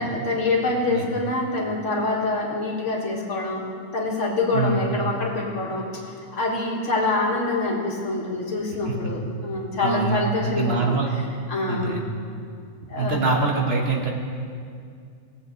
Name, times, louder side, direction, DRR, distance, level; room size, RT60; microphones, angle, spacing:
voice 1, 0.0-5.9 6.3-10.9 11.5-12.0 12.9-13.2 13.8-13.9, left 2 dB, 70° left, -2 dB, 2.0 m, -25 dB
voice 2, 4.5-4.8 9.8-10.2 10.4-11.1 11.7-12.0 13.0-14.1, right 3 dB, 55° right, 1 dB, 1.3 m, -23 dB
19.0 x 7.8 x 3.0 m, 2.3 s
omnidirectional pair, 1.3 m